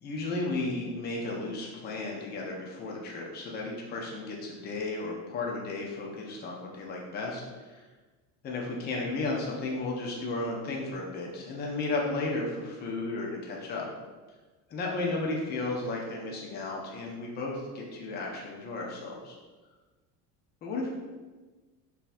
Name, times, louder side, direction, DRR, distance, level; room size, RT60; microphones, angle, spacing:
voice 1, 0.0-7.4 7.7-7.8 8.4-13.9 14.7-19.3 20.6-20.9, left 2 dB, 25° left, -2 dB, 0.5 m, -34 dB
3.7 x 2.8 x 2.5 m, 1.3 s
cardioid pair, 140°, 38 cm